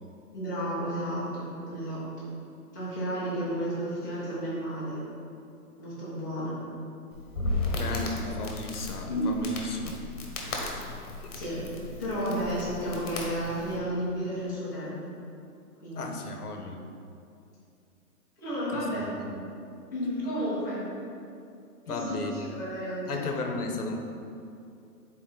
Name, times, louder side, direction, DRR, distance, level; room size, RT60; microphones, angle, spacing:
voice 1, 0.3-2.1 2.7-5.0 5.8-6.6 8.2-8.3 9.1-9.4 11.3-11.7 12.0-15.0 15.8-16.0 18.4-19.2 19.9-20.9 21.9-22.1 22.4-23.2, equal, 10° left, -12 dB, 1.0 m, -32 dB
Crackle, 7.1-13.8, left 2 dB, 50° left, 1.3 m, -35 dB
voice 2, 7.7-10.0 11.2-11.3 16.0-16.8 18.7-18.8 19.2-19.4 21.9-22.5 23.1-24.0, left 3 dB, 75° left, 3 dB, 1.0 m, -34 dB
6.6 x 4.4 x 3.8 m, 2.5 s
hypercardioid pair, 180°, 46 cm